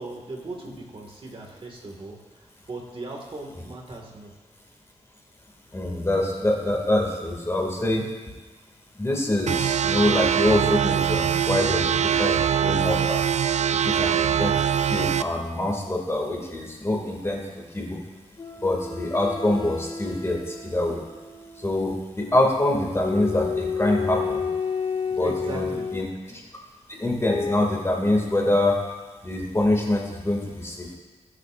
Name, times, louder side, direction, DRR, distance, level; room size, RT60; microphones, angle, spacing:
voice 1, 0.0-4.3 25.1-25.9, right 2 dB, 45° right, 0 dB, 2.0 m, -37 dB
voice 2, 5.7-8.1 9.0-13.2 13.8-18.0 18.6-21.0 21.6-24.5 25.2-26.4 27.0-28.8 29.2-31.0, left 1 dB, 20° left, -1 dB, 2.4 m, -25 dB
sound 1, 9.5-15.2, right 9 dB, 70° right, 0.4 m, -23 dB
sound 2, 18.4-21.9 23.0-26.1 27.2-27.6, left 5 dB, 35° left, 1.2 m, -31 dB
21.0 x 8.1 x 2.6 m, 1.3 s
wide cardioid pair, 95°, 12 cm